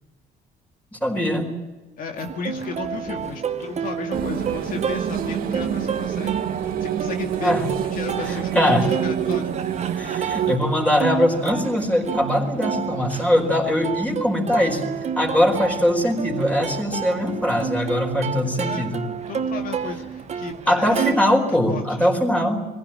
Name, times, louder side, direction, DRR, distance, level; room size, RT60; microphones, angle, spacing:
voice 1, 0.9-1.5 3.1-3.2 7.4-7.7 8.2-8.9 10.0-19.0 20.7-22.6, equal, 10° left, 1 dB, 4.6 m, -21 dB
voice 2, 2.0-9.6 18.6-18.9 19.3-21.2 21.7-22.1, left 5 dB, 55° left, 3 dB, 2.2 m, -34 dB
Plucked string instrument, 2.2-21.1, right 7 dB, 40° right, 1.4 m, -30 dB
sound 1, 4.1-10.6, right 10 dB, 60° right, 1.6 m, -27 dB
22.0 x 16.0 x 8.8 m, 1.2 s
cardioid pair, 110°, 17 cm